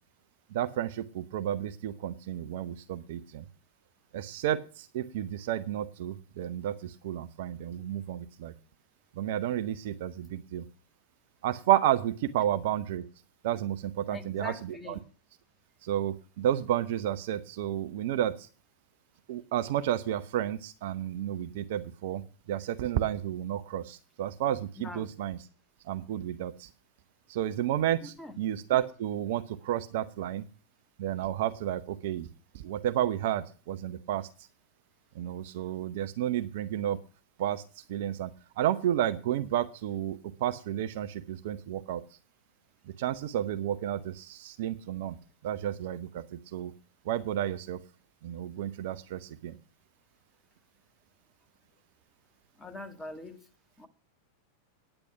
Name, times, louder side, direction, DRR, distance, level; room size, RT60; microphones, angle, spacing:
voice 1, 0.5-3.4 4.1-8.5 9.2-10.6 11.4-13.0 13.4-15.0 15.8-18.3 19.3-22.2 22.5-25.4 25.9-26.7 27.3-30.4 31.0-32.3 32.6-34.3 35.2-37.0 37.4-37.6 37.9-38.3 38.6-42.0 43.0-45.2 45.4-46.2 46.5-46.7 47.1-47.8 48.2-49.5, right 11 dB, 55° right, 0.7 m, -31 dB
voice 2, 14.1-15.0 24.8-25.1 28.0-28.3 52.6-53.4 53.8-53.9, left 2 dB, 10° left, 1.8 m, -42 dB
10.0 x 8.9 x 5.8 m
figure-of-eight pair, 90°, 0 cm